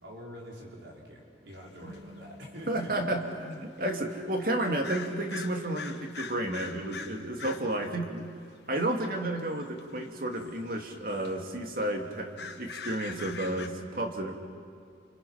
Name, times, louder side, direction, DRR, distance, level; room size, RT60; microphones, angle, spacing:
voice 1, 0.0-2.9, equal, 85° right, -2 dB, 5.1 m, -46 dB
sound 1, 1.9-2.0 2.8-2.9 3.8-3.9 4.8-7.8 9.4-9.8 10.4-10.6 10.9-11.3 11.8-11.9 12.2-13.7, left 5 dB, 70° left, 1.3 m, -42 dB
sound 2, 1.9-6.6, equal, 30° right, 2.3 m, -51 dB
voice 2, 2.7-8.3 8.7-14.3, right 1 dB, 50° right, 3 dB, 2.5 m, -32 dB
29.5 x 27.0 x 5.8 m, 2.1 s
head